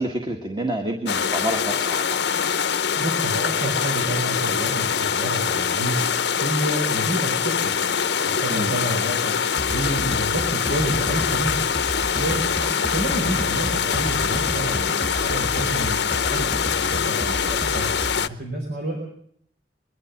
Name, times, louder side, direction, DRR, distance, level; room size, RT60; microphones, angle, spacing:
voice 1, 0.0-2.2 8.5-8.8 12.6-12.7, right 1 dB, 25° right, 3 dB, 1.7 m, -28 dB
sound 1, 1.1-18.3, left 7 dB, 80° left, 0.8 m, -24 dB
voice 2, 3.0-6.1 6.4-7.8 8.2-11.6 12.1-12.5 12.9-19.0, right 1 dB, 80° right, 0 dB, 4.6 m, -29 dB
sound 2, 9.6-18.3, equal, 5° left, 1.3 m, -33 dB
23.0 x 12.0 x 9.9 m, 0.66 s
head